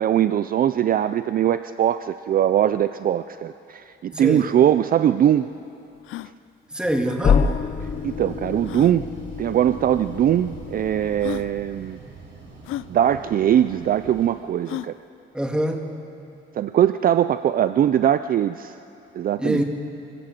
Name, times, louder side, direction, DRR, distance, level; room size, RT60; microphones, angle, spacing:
voice 1, 0.0-5.5 8.0-9.1 9.4-12.0 12.9-14.9 16.5-18.7 19.1-19.6, right 10 dB, 45° right, 12 dB, 0.4 m, -21 dB
voice 2, 4.1-4.5 6.7-7.5 15.3-15.9 19.4-19.6, right 1 dB, 5° right, 3 dB, 1.8 m, -24 dB
sound 1, 4.5-4.6 4.7-4.8 5.4-5.5 6.0-6.3 7.7-7.8 8.6-9.0 10.0-10.1 10.8-10.9 11.2-11.5 12.6-12.9 14.6-15.0, left 14 dB, 85° left, 0.5 m, -33 dB
sound 2, 6.8-14.3, right 4 dB, 65° right, 5.3 m, -44 dB
sound 3, 7.2-11.9, left 6 dB, 40° left, 0.7 m, -27 dB
24.5 x 16.0 x 7.4 m, 2.7 s
cardioid pair, 135°, 20 cm